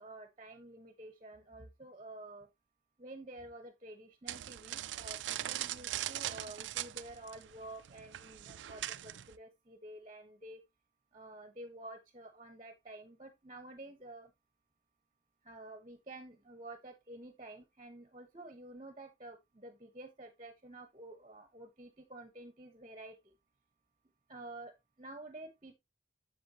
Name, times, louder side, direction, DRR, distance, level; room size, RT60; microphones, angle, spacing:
voice 1, 0.0-2.5 3.0-10.6 11.1-14.3 15.4-23.3 24.3-25.7, right 2 dB, 30° right, 1.0 m, -50 dB
sound 1, 4.3-9.4, right 13 dB, 85° right, 0.4 m, -40 dB
7.8 x 7.3 x 2.7 m
head